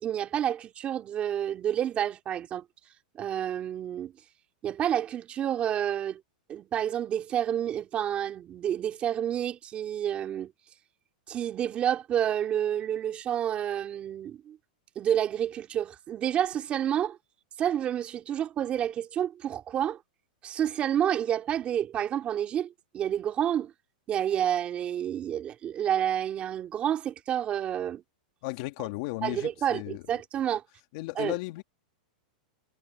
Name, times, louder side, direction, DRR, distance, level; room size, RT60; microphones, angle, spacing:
voice 1, 0.0-2.6 3.1-4.1 4.6-6.2 6.5-10.5 11.3-14.6 15.0-17.2 17.6-20.0 20.4-23.7 24.1-28.0 29.2-30.6 31.2-31.3, right 10 dB, 25° right, 2.6 m, -29 dB
voice 2, 28.4-30.0 30.9-31.6, left 22 dB, 50° left, 2.4 m, -35 dB
supercardioid pair, 140°, 5 cm